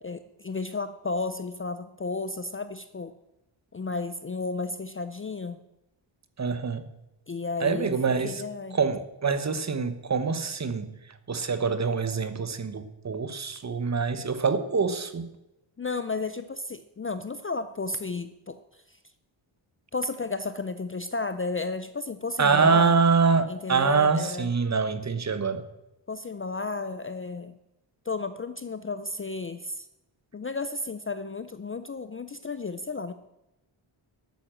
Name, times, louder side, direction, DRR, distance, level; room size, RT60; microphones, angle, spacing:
voice 1, 0.0-3.1 3.7-5.6 7.3-7.9 8.2-8.8 15.8-18.6 18.9-19.0 19.9-22.9 23.5-24.5 26.1-27.5 28.1-29.9 30.3-33.1, left 3 dB, 25° left, 11 dB, 0.5 m, -33 dB
voice 2, 6.4-6.9 7.6-8.4 8.7-15.3 22.4-25.7, right 5 dB, 35° right, 12 dB, 1.0 m, -25 dB
12.5 x 9.3 x 7.5 m, 0.91 s
wide cardioid pair, 180°, 49 cm